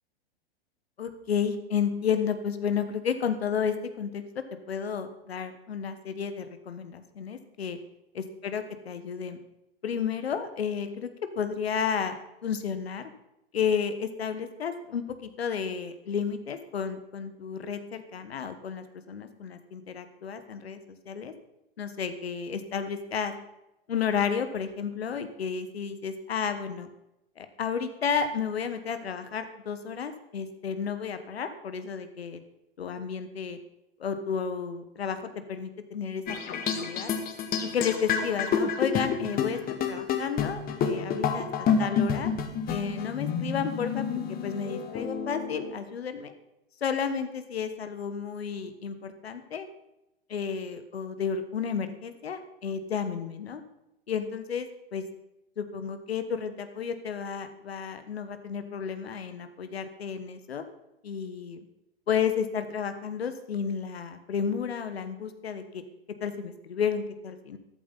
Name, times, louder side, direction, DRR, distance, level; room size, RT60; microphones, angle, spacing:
voice 1, 1.0-4.2 4.7-7.8 8.1-9.4 9.8-11.1 11.3-13.1 13.5-20.8 21.0-21.3 21.8-23.3 23.9-26.9 27.4-32.4 32.8-33.6 34.0-37.1 37.6-41.5 41.8-42.3 42.7-46.3 46.8-49.7 50.3-53.6 54.1-55.1 55.6-60.6 61.0-61.7 62.1-65.8 66.2-67.6, left 7 dB, 75° left, 10 dB, 1.5 m, -32 dB
sound 1, 36.3-45.7, left 6 dB, 30° left, 1.7 m, -29 dB
14.0 x 12.0 x 4.1 m, 0.90 s
figure-of-eight pair, 95°, 31 cm